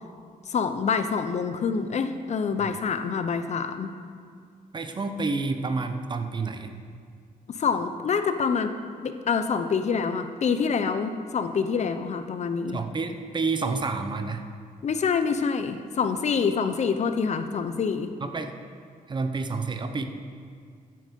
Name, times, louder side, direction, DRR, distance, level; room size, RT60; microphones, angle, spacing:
voice 1, 0.5-3.9 7.5-8.7 9.0-12.8 14.8-18.1, left 5 dB, 50° left, 9 dB, 0.7 m, -26 dB
voice 2, 4.7-6.7 12.7-14.4 18.2-18.5 19.1-20.0, right 4 dB, 30° right, 7 dB, 0.8 m, -29 dB
13.5 x 7.7 x 5.3 m, 2.1 s
cardioid pair, 115°, 14 cm